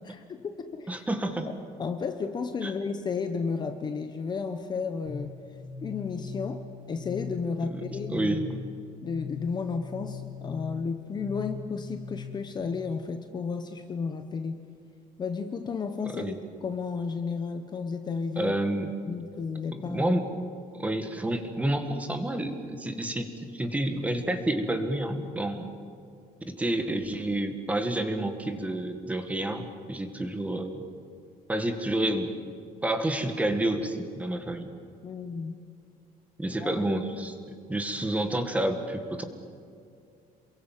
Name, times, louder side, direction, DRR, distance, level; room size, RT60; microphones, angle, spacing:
voice 1, 0.0-1.0 1.8-5.3 5.8-6.6 6.9-8.4 9.0-14.6 15.2-18.5 19.1-20.2 35.0-35.6 36.6-37.0, left 5 dB, 25° left, 7 dB, 1.1 m, -33 dB
voice 2, 0.9-1.5 2.6-2.7 7.6-7.8 8.1-8.4 16.0-16.3 18.4-18.9 19.7-20.2 20.7-25.7 26.5-30.8 31.5-32.3 32.8-34.7 36.4-37.4 37.7-39.2, right 1 dB, 10° right, 6 dB, 1.9 m, -29 dB
sound 1, 5.1-12.6, left 5 dB, 85° left, 4.3 m, -40 dB
28.0 x 22.5 x 7.6 m, 2.4 s
cardioid pair, 165°, 16 cm